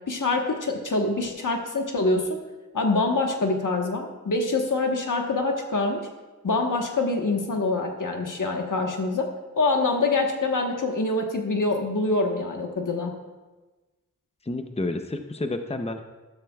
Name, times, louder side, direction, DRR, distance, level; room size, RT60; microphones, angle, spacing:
voice 1, 0.1-2.3 2.7-6.0 6.4-9.3 9.5-13.1, left 3 dB, 80° left, 2 dB, 1.3 m, -25 dB
voice 2, 14.4-16.0, left 2 dB, 20° left, 6 dB, 0.7 m, -30 dB
12.5 x 12.5 x 2.4 m, 1.2 s
wide cardioid pair, 50°, 31 cm